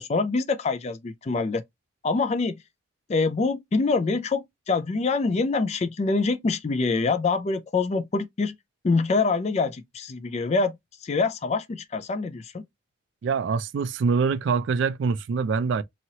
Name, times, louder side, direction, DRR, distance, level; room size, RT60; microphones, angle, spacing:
voice 1, 0.0-1.6 2.0-2.6 3.1-8.5 8.8-10.8 11.0-12.6, left 4 dB, 30° left, 0.3 m, -25 dB
voice 2, 13.2-15.8, right 5 dB, 65° right, 0.3 m, -24 dB
2.9 x 2.8 x 2.7 m
head